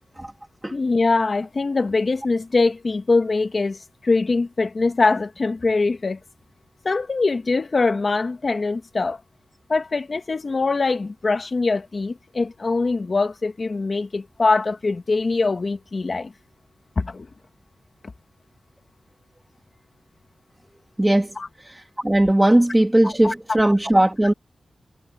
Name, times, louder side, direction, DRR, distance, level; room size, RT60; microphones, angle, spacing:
voice 1, 0.7-6.2 6.8-9.2 9.7-16.3 17.0-17.3 21.4-21.5 23.0-23.3, left 3 dB, 40° left, 1.9 m, -23 dB
voice 2, 21.0-21.3 21.6-24.3, right 1 dB, 10° right, 2.5 m, -18 dB
wide cardioid pair, 135°, 0 cm